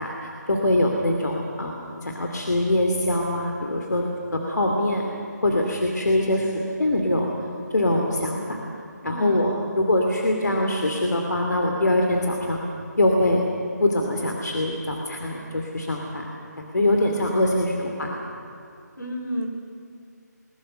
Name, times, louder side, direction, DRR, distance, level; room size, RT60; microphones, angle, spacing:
voice 1, 0.0-1.7 2.0-4.0 4.3-5.0 5.4-7.3 7.7-8.6 9.0-12.6 13.0-13.5 13.8-16.3 16.6-18.3, left 1 dB, 70° left, 2 dB, 2.7 m, -23 dB
voice 2, 9.0-9.6 16.8-17.4 19.0-19.5, equal, 85° left, 4 dB, 4.1 m, -32 dB
22.0 x 20.5 x 6.7 m, 2.4 s
figure-of-eight pair, 160°, 10 cm